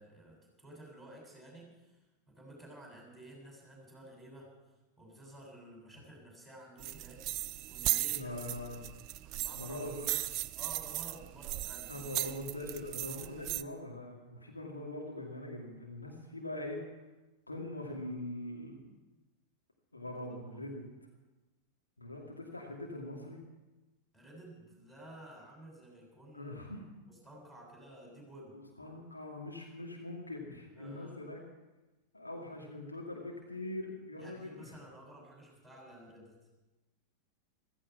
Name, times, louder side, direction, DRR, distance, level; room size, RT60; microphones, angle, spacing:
voice 1, 0.0-2.0 2.3-4.5 5.0-8.4 9.2-9.8 10.5-12.1 13.2-13.5 20.5-20.6 24.1-26.6 27.1-28.6 30.8-31.2 34.2-36.4, right 1 dB, 5° left, -3 dB, 7.4 m, -53 dB
sound 1, 6.8-13.6, right 15 dB, 40° right, 0.4 m, -37 dB
voice 2, 8.1-8.9 9.5-10.0 11.9-16.9 17.5-19.0 19.9-20.8 22.0-23.4 26.3-26.8 28.8-31.4 32.1-34.7, left 1 dB, 80° left, -1 dB, 2.5 m, -42 dB
15.5 x 15.0 x 6.0 m, 1.1 s
figure-of-eight pair, 90°, 0 cm